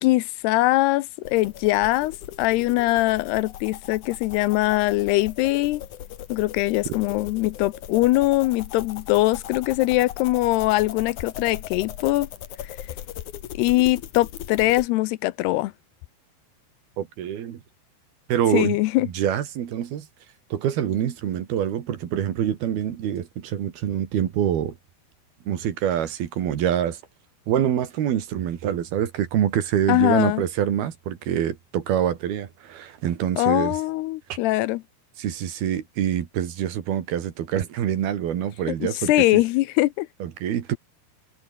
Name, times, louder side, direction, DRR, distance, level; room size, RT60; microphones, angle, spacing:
voice 1, 0.0-5.8 6.3-12.3 13.5-15.7 18.5-19.1 29.9-30.4 33.4-34.8 38.7-40.1, left 18 dB, 80° left, 2.7 m, -22 dB
sound 1, 1.2-14.9, left 11 dB, 60° left, 2.4 m, -39 dB
voice 2, 17.0-17.6 18.3-18.8 19.0-20.1 20.5-24.8 25.5-27.0 27.5-33.7 34.3-34.4 35.2-39.4 40.2-40.8, right 10 dB, 65° right, 3.9 m, -25 dB
omnidirectional pair, 4.8 m